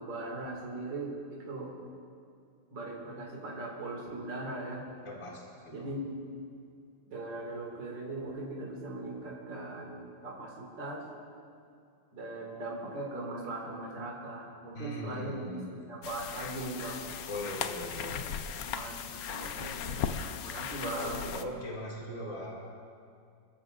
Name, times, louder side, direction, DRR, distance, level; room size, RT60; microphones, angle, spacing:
voice 1, 0.0-1.7 2.7-4.8 5.7-6.2 7.1-11.0 12.1-17.1 18.6-21.3, right 2 dB, 60° right, -3 dB, 2.9 m, -39 dB
voice 2, 5.0-5.9 14.7-16.0 17.3-18.5 20.9-22.7, left 1 dB, 40° left, -3 dB, 2.8 m, -40 dB
sound 1, 16.0-21.5, left 8 dB, 70° left, 0.8 m, -37 dB
28.0 x 14.5 x 2.5 m, 2.4 s
omnidirectional pair, 2.2 m